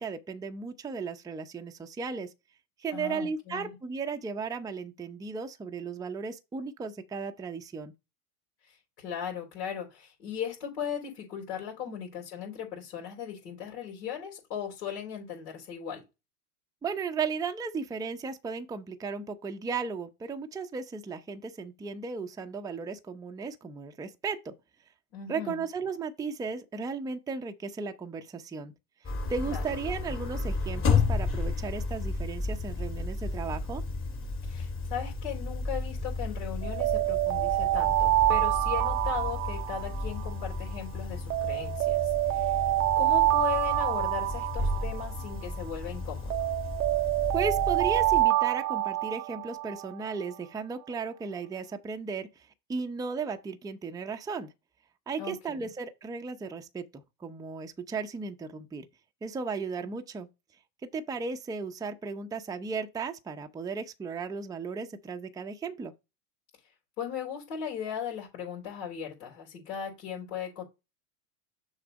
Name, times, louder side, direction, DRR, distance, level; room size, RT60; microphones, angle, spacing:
voice 1, 0.0-2.3 2.8-7.9 11.9-12.0 16.8-24.5 25.3-28.7 29.3-33.8 47.3-54.5 55.1-58.9 59.2-60.3 60.9-65.9, right 5 dB, 10° right, 0.6 m, -35 dB
voice 2, 2.9-3.8 8.6-16.0 25.1-25.6 29.5-29.6 34.4-42.7 43.0-46.3 55.2-55.7 67.0-70.6, left 8 dB, 80° left, 3.8 m, -37 dB
sound 1, 29.0-48.2, left 3 dB, 25° left, 2.1 m, -33 dB
Alarm, 36.6-40.8 41.3-45.8 46.3-50.1, right 17 dB, 85° right, 0.6 m, -27 dB
6.7 x 4.0 x 5.1 m
hypercardioid pair, 110°, 46 cm